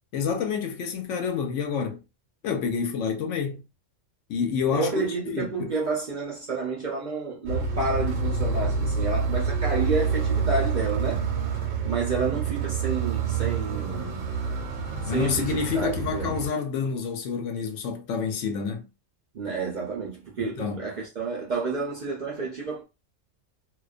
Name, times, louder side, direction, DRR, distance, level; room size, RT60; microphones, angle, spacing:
voice 1, 0.1-2.0 2.4-3.6 4.3-4.9 5.3-5.7 15.1-18.9 20.4-20.8, left 6 dB, 75° left, 0.9 m, -28 dB
voice 2, 4.7-11.2 11.8-14.2 15.0-16.3 19.3-22.8, right 4 dB, 50° right, 0.6 m, -30 dB
sound 1, 7.5-16.5, right 5 dB, 80° right, 1.0 m, -27 dB
2.4 x 2.2 x 2.4 m
omnidirectional pair, 1.3 m